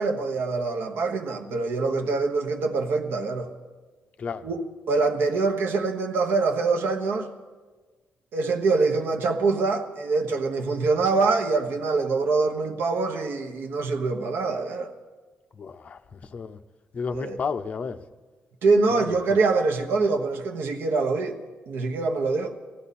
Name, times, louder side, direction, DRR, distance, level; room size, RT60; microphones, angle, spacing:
voice 1, 0.0-3.5 4.4-4.6 4.9-7.3 8.3-14.9 17.1-17.4 18.6-21.4 21.7-22.5, right 3 dB, 80° right, 1.2 m, -24 dB
voice 2, 15.6-16.6 16.9-18.0 18.9-19.2, left 5 dB, 35° left, 0.6 m, -32 dB
18.5 x 15.5 x 4.2 m
wide cardioid pair, 150°, 4 cm